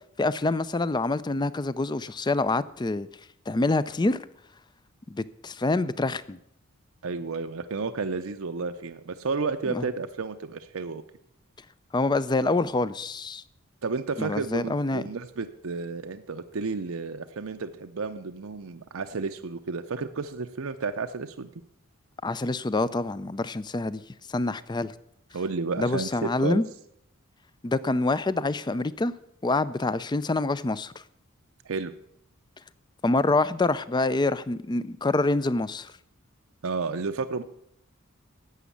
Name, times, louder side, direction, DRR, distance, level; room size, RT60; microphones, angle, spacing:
voice 1, 0.2-3.1 3.5-4.3 5.1-6.4 9.7-9.9 11.9-13.4 14.2-15.0 22.2-24.0 24.3-24.9 25.8-26.6 27.6-29.1 29.4-30.9 33.0-35.9, left 2 dB, 20° left, 0.4 m, -26 dB
voice 2, 7.0-11.0 13.8-21.5 25.3-26.6 31.6-31.9 36.6-37.4, right 4 dB, 70° right, 0.6 m, -32 dB
11.5 x 8.1 x 8.4 m
head